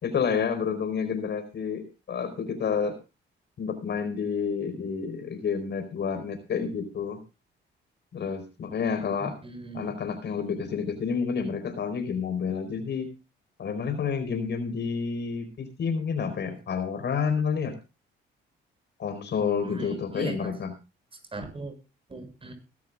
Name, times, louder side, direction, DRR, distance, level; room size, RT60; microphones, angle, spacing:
voice 1, 0.0-2.9 3.6-7.2 8.1-9.4 9.7-13.1 13.6-17.7 19.0-20.7, left 6 dB, 60° left, 9 dB, 4.5 m, -29 dB
voice 2, 9.2-9.9 19.6-20.5 21.3-21.7 22.1-22.5, right 3 dB, 25° right, 6 dB, 7.0 m, -38 dB
21.5 x 13.5 x 2.4 m, 0.30 s
cardioid pair, 90°, 20 cm